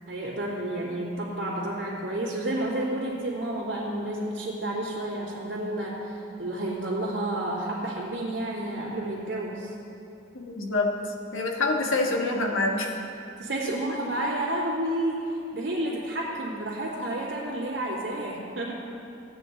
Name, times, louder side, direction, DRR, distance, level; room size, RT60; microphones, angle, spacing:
voice 1, 0.1-9.7 13.4-18.7, right 1 dB, 75° right, -10 dB, 2.2 m, -30 dB
voice 2, 10.3-12.9, left 2 dB, 90° left, 1 dB, 1.4 m, -26 dB
15.5 x 9.1 x 4.0 m, 2.6 s
head